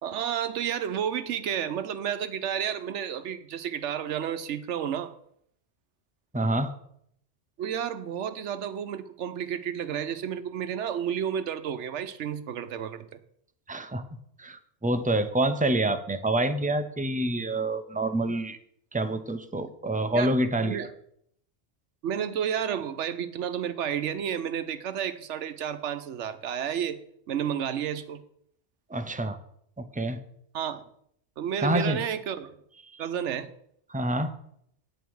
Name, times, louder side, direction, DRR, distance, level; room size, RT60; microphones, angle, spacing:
voice 1, 0.0-5.1 7.6-13.1 20.1-20.3 20.6-20.9 22.0-27.0 27.3-28.2 30.5-30.8 31.4-32.5 33.0-33.5, right 8 dB, 90° right, 1.0 m, -31 dB
voice 2, 6.3-6.7 13.7-14.0 14.4-18.6 18.9-20.9 28.9-29.4 29.8-30.2 31.6-32.0 32.9-33.0 33.9-34.3, right 1 dB, 10° right, 0.4 m, -27 dB
9.1 x 8.8 x 4.7 m
omnidirectional pair, 1.2 m